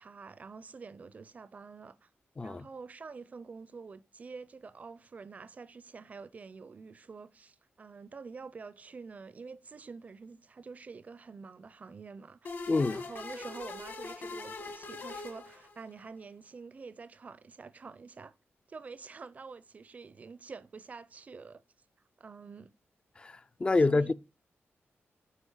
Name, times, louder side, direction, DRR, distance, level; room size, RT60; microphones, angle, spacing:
voice 1, 0.0-2.1 2.4-12.5 12.9-18.3 18.7-21.6 22.2-22.7 23.9-24.1, right 4 dB, 35° right, 0.5 m, -47 dB
voice 2, 2.4-2.7 12.7-13.0 23.2-24.1, left 3 dB, 20° left, 0.3 m, -27 dB
sound 1, 12.4-16.0, left 3 dB, 50° left, 1.4 m, -42 dB
8.1 x 5.0 x 5.6 m
wide cardioid pair, 170°, 5 cm